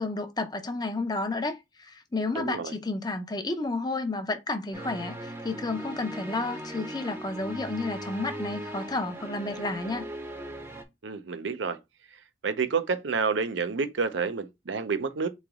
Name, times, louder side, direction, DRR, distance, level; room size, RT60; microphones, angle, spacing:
voice 1, 0.0-10.1, left 3 dB, 20° left, 0.6 m, -31 dB
voice 2, 2.3-2.7 11.0-11.8 12.4-15.3, right 5 dB, 80° right, 0.6 m, -29 dB
sound 1, 4.7-10.8, right 1 dB, 15° right, 0.7 m, -39 dB
3.9 x 3.2 x 3.5 m
head